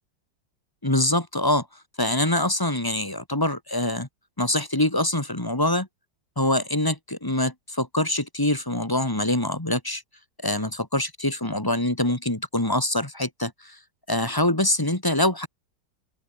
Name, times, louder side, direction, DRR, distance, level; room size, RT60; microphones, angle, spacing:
voice 1, 0.8-1.7 2.0-4.1 4.4-5.9 6.4-10.0 10.4-13.8 14.1-15.5, left 1 dB, 10° left, 2.1 m, -24 dB
open air
omnidirectional pair, 2.0 m